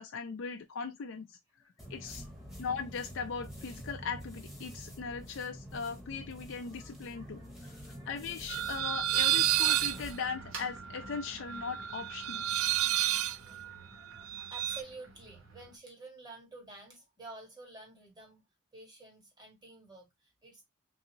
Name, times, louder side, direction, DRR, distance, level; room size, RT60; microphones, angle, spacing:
voice 1, 0.0-1.6 1.9-2.2 2.6-12.4, left 5 dB, 65° left, 0.4 m, -39 dB
voice 2, 1.5-2.6 6.5-8.2 12.5-18.4 18.7-20.6, right 2 dB, 20° right, 1.5 m, -52 dB
sound 1, 1.8-10.2, equal, ahead, 1.1 m, -47 dB
sound 2, 8.5-14.8, right 13 dB, 85° right, 0.4 m, -31 dB
sound 3, 9.8-15.8, right 3 dB, 65° right, 1.0 m, -50 dB
3.7 x 2.6 x 2.7 m
head